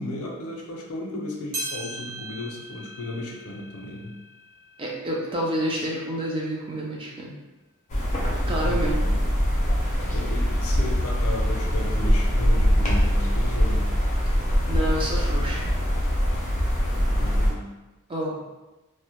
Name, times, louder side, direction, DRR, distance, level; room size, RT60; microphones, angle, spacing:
voice 1, 0.0-4.1 8.4-9.0 10.1-13.9 17.2-17.7, left 1 dB, 80° left, -1 dB, 0.5 m, -34 dB
sound 1, 1.5-6.2 6.7-6.8 7.6-7.7 8.6-8.7, right 1 dB, 75° right, 0.9 m, -39 dB
voice 2, 4.8-7.4 8.5-9.0 14.7-15.6 18.1-18.4, equal, 25° right, -3 dB, 0.4 m, -28 dB
sound 2, 7.9-17.5, equal, 35° left, 0.5 m, -23 dB
2.1 x 2.0 x 2.9 m, 1.1 s
head